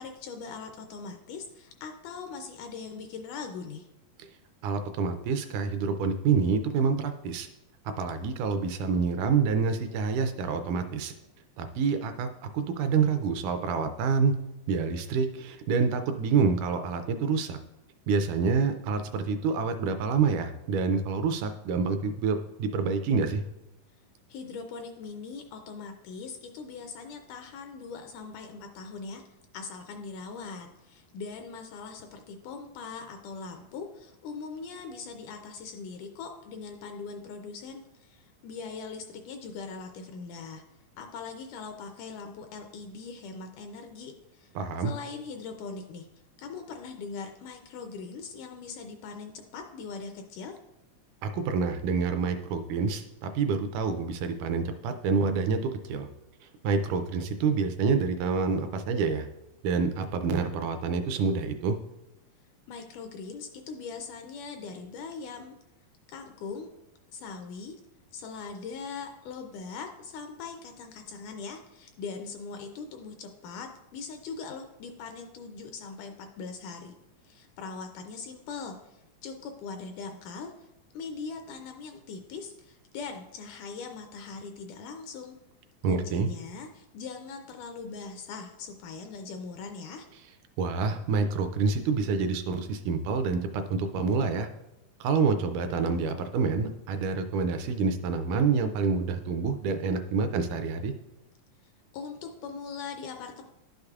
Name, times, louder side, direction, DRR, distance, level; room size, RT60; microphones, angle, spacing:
voice 1, 0.0-3.9 24.3-29.2 29.5-40.6 41.0-46.1 46.4-50.6 62.7-65.6 66.1-66.7 67.1-67.8 68.1-77.0 77.2-80.7 80.9-85.4 85.9-90.1 101.9-103.4, left 5 dB, 80° left, 5 dB, 1.9 m, -41 dB
voice 2, 4.6-7.5 7.9-11.1 11.6-14.3 14.7-17.6 18.1-23.4 44.6-44.9 51.2-56.1 56.4-59.3 59.6-61.8 85.8-86.3 90.6-94.5 95.0-100.9, right 5 dB, 80° right, 8 dB, 1.9 m, -27 dB
11.0 x 6.6 x 2.4 m, 0.93 s
omnidirectional pair, 3.9 m